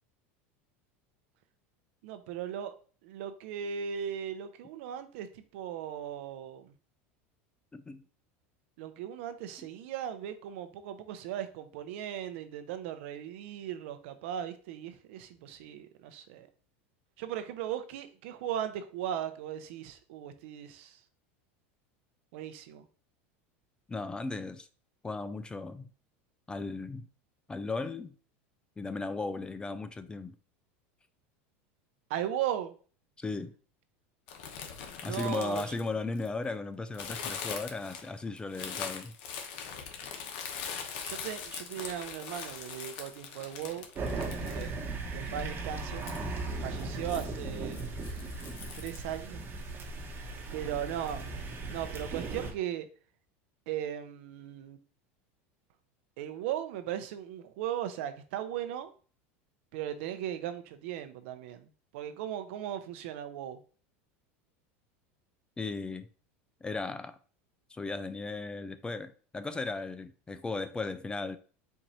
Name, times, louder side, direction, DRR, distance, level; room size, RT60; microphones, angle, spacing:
voice 1, 2.0-2.7 3.0-6.7 8.8-16.5 17.2-21.0 22.3-22.8 32.1-32.7 35.0-35.6 41.0-43.9 44.5-44.7 45.1-46.1 46.6-47.8 48.8-49.4 50.5-51.3 51.6-52.9 53.7-54.8 56.2-58.9 59.7-63.6, right 10 dB, 70° right, 0.7 m, -37 dB
voice 2, 7.7-8.0 23.9-24.7 25.0-25.9 26.5-27.1 27.5-28.1 28.8-30.4 33.2-33.5 35.0-39.1 65.6-66.1 66.6-67.2 67.7-71.4, left 3 dB, 15° left, 0.4 m, -36 dB
sound 1, 34.3-36.4 36.9-44.9 45.3-45.4 45.9-46.2 46.8-47.3 47.7-49.0, left 7 dB, 65° left, 1.0 m, -41 dB
sound 2, 44.0-52.5, right 3 dB, 30° right, 1.1 m, -37 dB
4.5 x 2.6 x 4.3 m
supercardioid pair, 115°, 7 cm